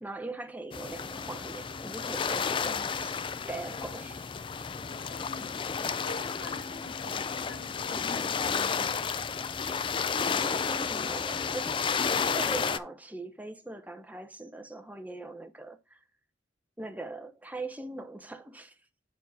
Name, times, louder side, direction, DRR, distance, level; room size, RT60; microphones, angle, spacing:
voice 1, 0.0-3.1 3.5-4.3 5.9-6.0 10.1-11.9 12.3-16.0 16.8-18.7, right 2 dB, 10° right, 0.8 m, -41 dB
sound 1, 0.7-12.8, left 6 dB, 25° left, 0.3 m, -32 dB
voice 2, 4.8-5.6 6.0-9.1, left 3 dB, 85° left, 4.2 m, -47 dB
8.0 x 4.5 x 4.1 m
head